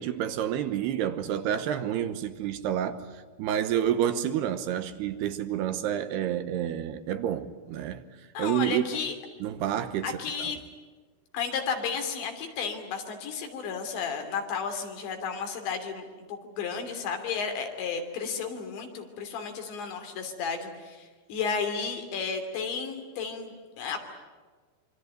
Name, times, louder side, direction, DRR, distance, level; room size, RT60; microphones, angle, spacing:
voice 1, 0.0-3.1 3.4-8.0 8.4-8.8 9.4-10.1, right 10 dB, 75° right, 2.9 m, -29 dB
voice 2, 8.4-9.2 10.0-10.6 11.3-24.0, left 5 dB, 80° left, 5.2 m, -33 dB
26.0 x 25.0 x 9.1 m
omnidirectional pair, 5.1 m